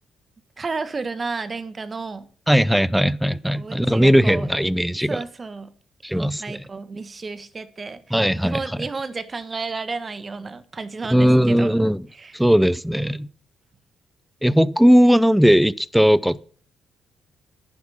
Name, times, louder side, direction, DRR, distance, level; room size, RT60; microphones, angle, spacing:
voice 1, 0.6-2.3 3.5-4.6 5.1-5.7 6.1-11.7 12.1-12.4, right 4 dB, 30° right, 1.4 m, -32 dB
voice 2, 2.5-5.2 6.0-6.6 8.1-8.8 11.1-12.1 12.3-13.3 14.4-16.4, equal, ahead, 0.6 m, -18 dB
11.0 x 9.7 x 5.6 m
cardioid pair, 90°, 0 cm